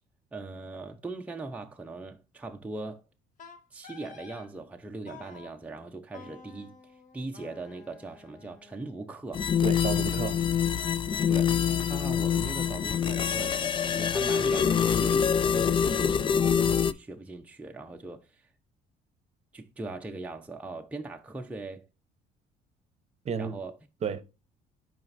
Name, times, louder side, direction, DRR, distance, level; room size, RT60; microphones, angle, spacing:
voice 1, 0.3-3.0 3.7-9.5 11.3-18.5 19.5-21.9 23.4-23.8, right 2 dB, 10° right, 0.7 m, -40 dB
Wind instrument woodwind instrument, 3.4-4.5 5.1-5.5 6.1-9.1, left 5 dB, 50° left, 1.4 m, -50 dB
sound 1, 9.3-16.9, left 7 dB, 30° left, 0.4 m, -25 dB
voice 2, 9.6-10.4 23.2-23.6 24.0-24.2, right 6 dB, 40° right, 0.9 m, -31 dB
7.4 x 5.0 x 2.6 m
cardioid pair, 110°, 17 cm